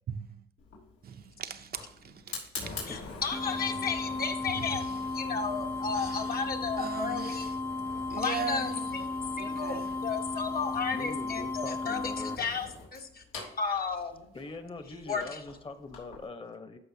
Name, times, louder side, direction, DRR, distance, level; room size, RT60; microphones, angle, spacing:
Fire, 0.6-16.2, left 3 dB, 80° left, 3.4 m, -46 dB
voice 1, 1.0-2.8 6.0-6.2 6.8-7.5 8.1-8.9 9.4-9.9, right 7 dB, 50° right, 0.7 m, -39 dB
voice 2, 2.9-4.8 5.1-7.5 8.2-9.1 9.4-13.2 13.6-14.3 15.1-15.4, left 5 dB, 50° left, 1.3 m, -34 dB
sound 1, 3.3-12.4, left 3 dB, 10° left, 0.4 m, -35 dB
voice 3, 10.9-12.4 13.7-13.8 14.3-16.8, left 3 dB, 25° left, 1.1 m, -43 dB
13.0 x 5.1 x 2.8 m
cardioid pair, 90°, 20 cm